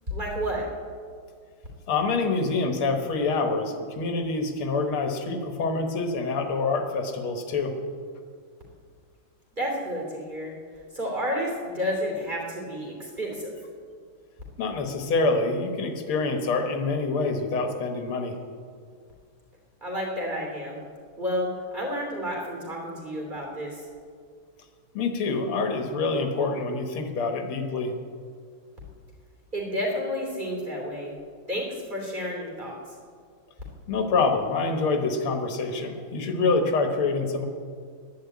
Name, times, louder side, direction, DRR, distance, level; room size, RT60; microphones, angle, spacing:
voice 1, 0.1-0.7 9.6-10.5 10.9-13.5 19.8-20.8 21.2-23.9 29.5-31.2 31.5-33.0, equal, 20° right, -1 dB, 3.0 m, -31 dB
voice 2, 1.9-7.8 14.6-18.4 24.9-27.9 33.9-37.5, left 3 dB, 85° left, 5 dB, 2.2 m, -26 dB
10.5 x 10.5 x 8.4 m, 2.1 s
omnidirectional pair, 2.3 m